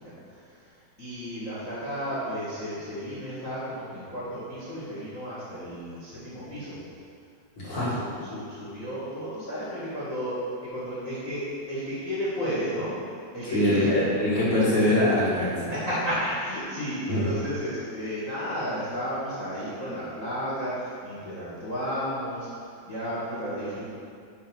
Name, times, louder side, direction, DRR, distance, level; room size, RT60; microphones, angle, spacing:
voice 1, 0.0-6.8 7.6-13.9 15.7-23.9, equal, 85° left, -9 dB, 0.7 m, -33 dB
voice 2, 7.6-7.9 13.5-15.7 17.1-17.2, left 1 dB, 45° left, -10 dB, 2.8 m, -23 dB
9.4 x 5.6 x 5.4 m, 2.3 s
omnidirectional pair, 5.4 m